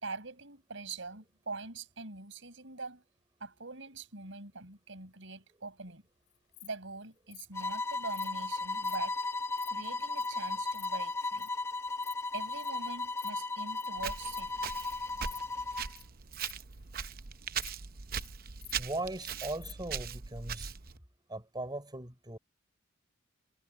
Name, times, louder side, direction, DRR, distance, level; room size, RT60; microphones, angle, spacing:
voice 1, 0.0-3.0 3.4-6.0 6.6-9.2 9.7-11.5 12.3-14.7, right 3 dB, 70° right, 5.9 m, -43 dB
Insect, 6.3-6.7 7.3-7.5 8.1-8.3 8.8-9.0 9.3-9.7 10.2-10.3 10.5-10.9 11.4-11.5 11.9-12.1 12.4-12.7 13.1-13.3 13.6-13.9 14.3-14.5 14.8-14.9 15.3-15.4 15.8-16.0 16.3-17.2 17.6-17.7 18.0-18.3 18.6-19.3 19.6-19.7, left 17 dB, 70° left, 4.9 m, -51 dB
sound 1, 7.5-15.9, left 3 dB, 15° left, 1.1 m, -35 dB
Walk footsteps, 14.0-21.0, right 7 dB, 50° right, 0.8 m, -40 dB
voice 2, 18.8-20.7 21.3-22.4, right 2 dB, 20° right, 4.9 m, -39 dB
head